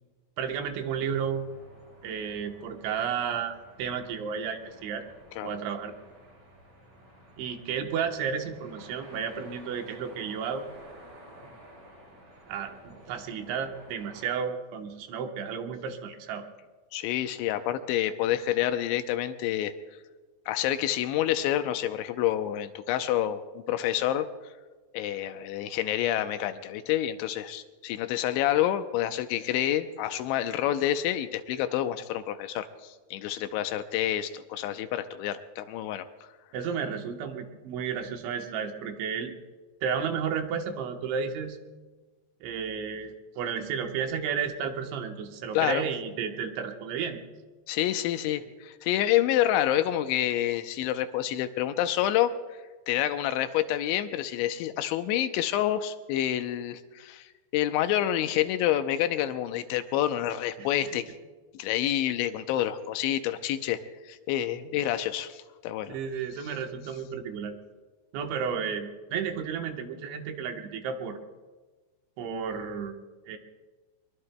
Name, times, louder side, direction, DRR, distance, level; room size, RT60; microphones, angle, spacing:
voice 1, 0.4-1.5 2.0-5.0 5.4-5.9 7.4-10.7 12.5-16.5 36.5-39.3 39.8-41.6 42.4-47.2 60.6-60.9 65.9-67.5 68.1-71.2 72.2-72.9 73.3-73.4, right 7 dB, 75° right, 4 dB, 3.4 m, -32 dB
sound 1, 0.8-14.2, right 1 dB, 55° right, 5.8 m, -52 dB
voice 2, 16.9-19.7 20.5-24.3 24.9-36.1 45.5-45.8 47.7-52.6 52.9-61.0 61.5-63.8 64.0-66.0, left 12 dB, 80° left, 9 dB, 2.9 m, -28 dB
23.0 x 22.5 x 2.2 m, 1.3 s
omnidirectional pair, 5.4 m